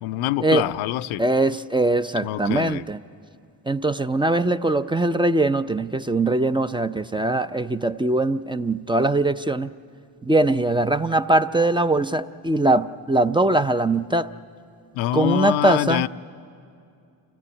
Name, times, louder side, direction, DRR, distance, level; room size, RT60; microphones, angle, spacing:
voice 1, 0.0-1.2 2.2-2.9 14.9-16.1, left 15 dB, 90° left, 0.6 m, -25 dB
voice 2, 1.2-3.0 3.7-9.7 10.2-14.3 15.1-16.1, right 2 dB, 10° right, 0.4 m, -21 dB
28.0 x 14.0 x 9.7 m
supercardioid pair, 60°, 46 cm